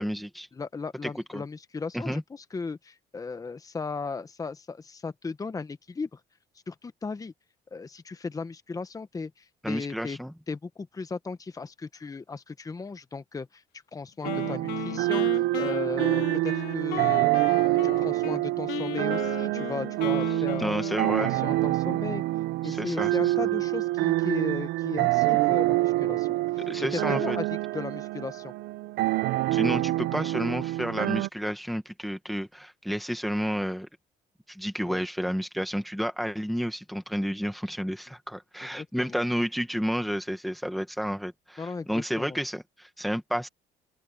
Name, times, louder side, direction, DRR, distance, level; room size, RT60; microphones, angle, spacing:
voice 1, 0.0-0.5 1.0-1.4 1.9-2.2 9.6-10.3 20.6-21.4 22.6-23.5 26.7-27.4 29.5-33.9 34.5-43.5, equal, ahead, 1.7 m, -31 dB
voice 2, 0.5-6.2 6.7-7.3 7.7-10.2 10.5-13.6 13.9-17.3 17.6-20.7 21.2-22.2 22.6-26.3 26.5-27.5 27.7-28.5 30.2-30.3 34.8-35.0 38.7-39.2 41.6-42.4, left 4 dB, 20° left, 1.1 m, -36 dB
Wind instrument woodwind instrument, 14.2-18.4 18.7-21.6, left 15 dB, 85° left, 4.2 m, -36 dB
sound 1, 14.2-31.3, right 18 dB, 85° right, 0.6 m, -26 dB
open air
cardioid pair, 110°, 17 cm